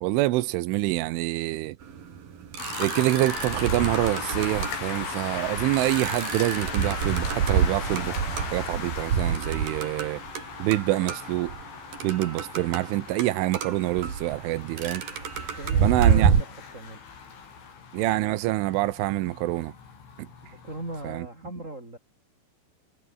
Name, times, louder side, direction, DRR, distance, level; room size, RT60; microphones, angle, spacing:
voice 1, 0.0-1.8 2.8-10.2 10.6-11.5 12.0-15.0 15.8-16.3 17.9-19.7 20.2-20.3 21.0-21.3, right 17 dB, 90° right, 3.6 m, -26 dB
sound 1, 1.8-16.4, right 7 dB, 50° right, 4.7 m, -28 dB
sound 2, 2.6-21.2, left 6 dB, 85° left, 8.5 m, -38 dB
voice 2, 15.4-17.0 20.5-22.0, right 2 dB, 15° right, 5.8 m, -39 dB
omnidirectional pair, 5.4 m